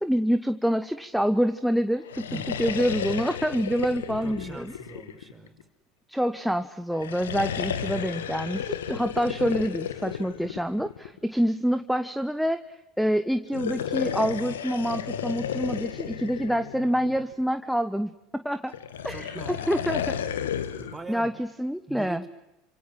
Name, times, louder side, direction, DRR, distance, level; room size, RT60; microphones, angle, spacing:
voice 1, 0.0-2.3 2.6-4.7 6.1-18.7 19.0-20.1 21.1-22.2, equal, ahead, 9 dB, 1.2 m, -27 dB
sound 1, 2.0-5.6 6.9-11.2 13.4-17.4 18.7-21.0, left 9 dB, 80° left, 1.7 m, -33 dB
voice 2, 4.2-5.6 19.1-19.9 20.8-21.3 21.9-22.3, right 3 dB, 20° right, 6 dB, 5.3 m, -42 dB
28.5 x 26.5 x 7.7 m, 0.93 s
hypercardioid pair, 75°, 0 cm